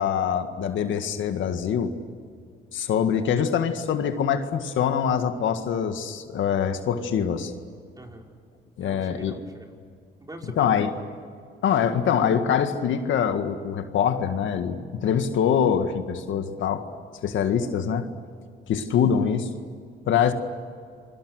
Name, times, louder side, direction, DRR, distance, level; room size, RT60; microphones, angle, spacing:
voice 1, 0.0-1.9 2.7-7.5 8.8-9.4 10.6-10.9 11.6-16.9 17.2-18.1 18.7-19.5 20.1-20.3, left 8 dB, 75° left, 7 dB, 1.9 m, -24 dB
voice 2, 8.0-8.3 8.8-9.8 10.2-11.0, right 1 dB, 20° right, 1 dB, 5.0 m, -42 dB
28.0 x 24.0 x 6.5 m, 2.2 s
cardioid pair, 90°, 20 cm